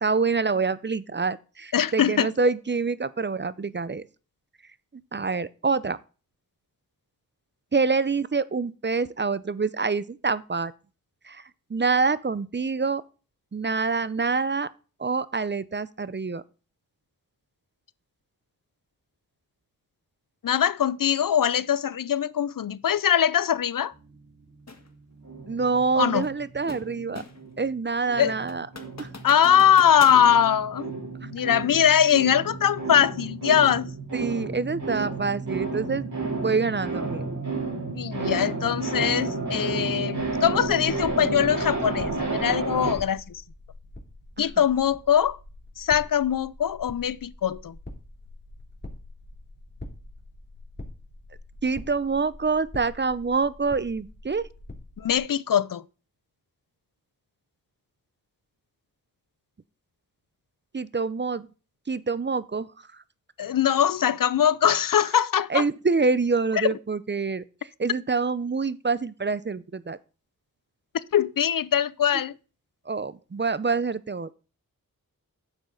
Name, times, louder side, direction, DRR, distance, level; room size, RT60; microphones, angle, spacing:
voice 1, 0.0-4.0 5.1-6.0 7.7-10.7 11.3-11.4 11.7-13.0 13.5-14.7 15.0-16.4 25.5-27.2 27.6-28.7 29.0-29.1 34.1-36.1 36.4-37.2 38.2-38.4 44.4-44.5 51.6-54.5 60.7-61.5 61.9-62.7 65.5-67.4 67.8-70.0 72.9-74.3, right 4 dB, 30° right, 0.6 m, -26 dB
voice 2, 1.7-2.3 20.4-23.9 26.0-26.3 28.2-28.3 29.2-30.9 31.2-33.9 38.0-43.4 44.4-45.4 45.8-47.8 55.0-55.8 63.4-65.6 66.6-66.7 71.1-72.3, left 9 dB, 65° left, 0.5 m, -22 dB
sound 1, 24.7-24.9 26.2-27.5 27.9-28.0 28.5-30.2, left 4 dB, 50° left, 1.7 m, -42 dB
sound 2, 25.2-27.8 28.1-42.9, right 3 dB, 55° right, 3.1 m, -32 dB
sound 3, 40.2-55.2, left 2 dB, 30° left, 2.8 m, -44 dB
9.6 x 7.3 x 3.8 m
wide cardioid pair, 60°, 35 cm